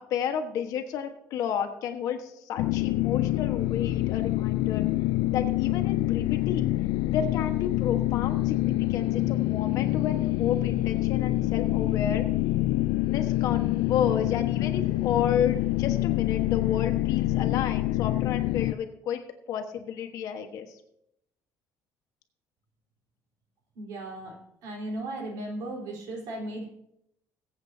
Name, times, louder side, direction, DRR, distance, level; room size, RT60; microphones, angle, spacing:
voice 1, 0.0-4.8 5.3-6.7 7.1-12.3 13.1-19.2 19.5-20.8, left 8 dB, 60° left, 5 dB, 1.3 m, -31 dB
sound 1, 2.6-18.7, left 16 dB, 80° left, 0.3 m, -26 dB
voice 2, 23.7-24.3 24.6-26.7, right 1 dB, 75° right, -1 dB, 3.9 m, -36 dB
22.0 x 8.0 x 2.8 m, 0.79 s
cardioid pair, 175°, 7 cm